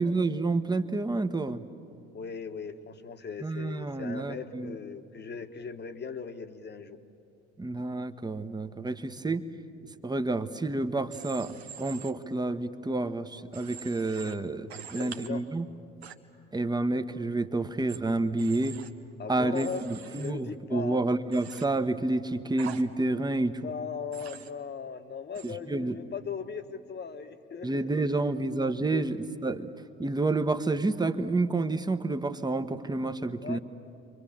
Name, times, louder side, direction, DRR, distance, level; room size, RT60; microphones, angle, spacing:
voice 1, 0.0-1.6 3.4-4.7 7.6-9.4 10.0-15.7 16.5-18.8 19.3-23.6 25.4-25.9 27.6-29.2 29.4-29.7 30.0-33.6, right 2 dB, 15° right, 10 dB, 1.2 m, -29 dB
voice 2, 2.1-7.0 14.8-15.5 19.2-19.8 20.2-21.0 23.6-27.9 28.8-29.0 33.4-33.6, left 6 dB, 30° left, 9 dB, 1.4 m, -38 dB
Human voice / Train, 11.1-12.1 13.5-14.3 14.7-15.3 16.0-16.1 17.9-18.0 18.4-18.9 19.5-20.3 21.3-21.6 22.6-22.8 24.1-24.5 25.3-25.5, right 8 dB, 75° right, 1.1 m, -44 dB
29.5 x 24.5 x 7.4 m, 2.5 s
figure-of-eight pair, 55°, 32 cm